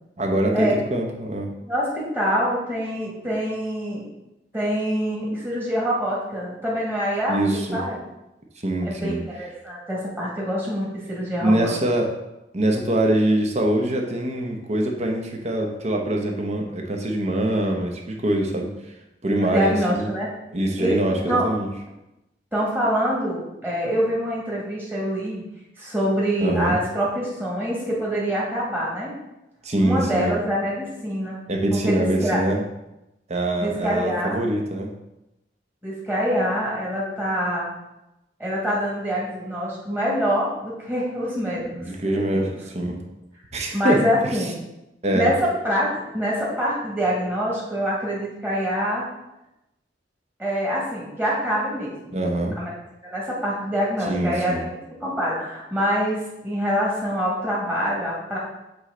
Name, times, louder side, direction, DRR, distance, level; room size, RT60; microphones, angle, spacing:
voice 1, 0.2-1.5 7.3-7.8 8.6-9.2 11.4-12.1 12.5-18.7 19.2-20.1 20.5-21.7 26.4-26.8 29.6-30.4 31.5-32.6 33.3-34.9 41.9-43.0 43.5-44.0 45.0-45.3 52.1-52.6 54.1-54.6, right 1 dB, 40° right, 1 dB, 0.9 m, -23 dB
voice 2, 1.7-4.1 4.5-8.0 8.8-11.7 19.4-20.3 20.8-21.0 21.3-21.5 22.5-25.4 25.8-29.2 29.8-31.4 31.7-32.4 33.6-34.4 35.8-37.7 38.4-42.5 43.7-44.5 45.1-45.9 46.1-49.0 50.4-52.1 52.6-52.7 53.0-58.4, equal, 10° right, -6 dB, 2.0 m, -25 dB
8.0 x 3.3 x 3.8 m, 0.91 s
head